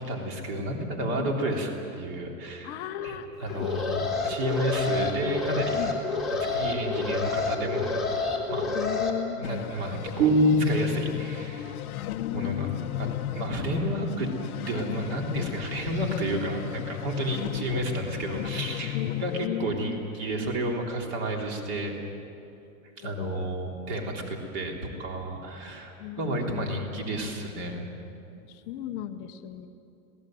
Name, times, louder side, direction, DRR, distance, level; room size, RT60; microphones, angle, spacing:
voice 1, 0.1-2.7 3.0-5.8 6.3-7.9 8.5-8.7 9.4-11.8 12.3-14.3 14.6-22.0 23.0-24.7 25.0-27.9, right 1 dB, 35° right, 1 dB, 3.4 m, -31 dB
voice 2, 2.6-3.7 5.6-5.9 8.7-9.4 12.1-12.8 18.9-20.0 23.0-23.4 26.0-26.6 28.5-29.7, left 11 dB, 25° left, 7 dB, 0.9 m, -36 dB
Alarm, 3.5-9.1, left 3 dB, ahead, 2.2 m, -29 dB
sound 1, 9.4-19.5, left 13 dB, 90° left, 1.0 m, -34 dB
sound 2, 10.2-11.2, right 1 dB, 60° right, 4.0 m, -22 dB
26.5 x 18.5 x 7.7 m, 2.7 s
supercardioid pair, 170°, 43 cm